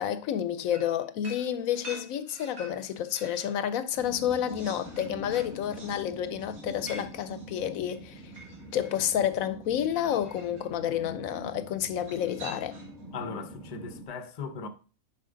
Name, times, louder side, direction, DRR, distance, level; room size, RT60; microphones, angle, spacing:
voice 1, 0.0-8.3 8.7-12.8, left 10 dB, 80° left, 1.0 m, -30 dB
sound 1, 0.7-3.6 4.0-9.0 10.1-10.7 12.0-13.0, equal, 85° right, 2.6 m, -47 dB
sound 2, 3.9-14.1, right 2 dB, ahead, 1.2 m, -45 dB
voice 2, 13.1-14.7, left 5 dB, 40° left, 0.6 m, -38 dB
6.7 x 4.9 x 3.9 m
omnidirectional pair, 1.5 m